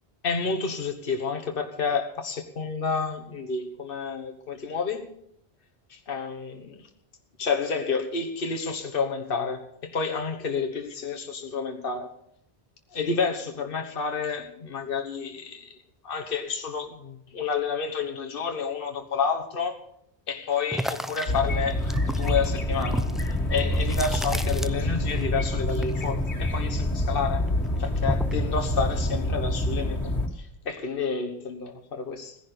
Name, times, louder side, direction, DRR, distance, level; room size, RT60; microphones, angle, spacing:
voice 1, 0.2-5.1 5.9-6.8 7.4-12.1 12.9-15.8 16.0-19.8 20.3-21.8 22.1-23.1 23.5-27.5 27.8-30.1 30.4-32.4, left 5 dB, 55° left, 4 dB, 1.5 m, -30 dB
sound 1, 20.7-25.2 25.5-27.1 27.5-28.5, equal, ahead, 0.4 m, -33 dB
sound 2, 21.3-30.3, left 1 dB, 90° left, 2.2 m, -27 dB
17.0 x 10.5 x 6.7 m, 0.71 s
omnidirectional pair, 1.1 m